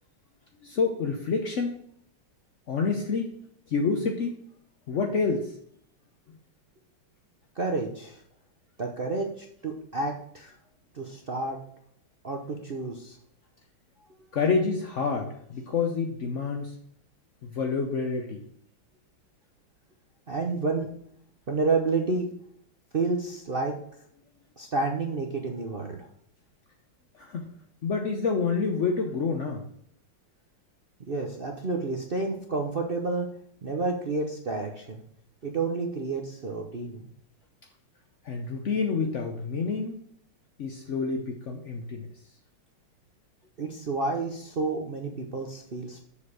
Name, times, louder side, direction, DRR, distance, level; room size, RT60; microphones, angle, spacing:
voice 1, 0.6-1.7 2.7-3.3 3.7-4.4 4.9-5.5 14.3-16.7 17.4-18.4 27.1-27.5 27.8-29.7 38.2-40.0 40.6-42.1, left 4 dB, 65° left, 3 dB, 0.7 m, -28 dB
voice 2, 7.5-8.2 8.8-10.5 10.9-11.6 12.2-13.2 20.3-20.9 21.5-22.3 22.9-23.8 24.6-26.1 31.0-33.3 33.6-35.0 35.4-37.1 43.6-46.0, right 3 dB, 70° right, 2 dB, 0.5 m, -30 dB
7.0 x 5.3 x 6.4 m, 0.67 s
omnidirectional pair, 2.3 m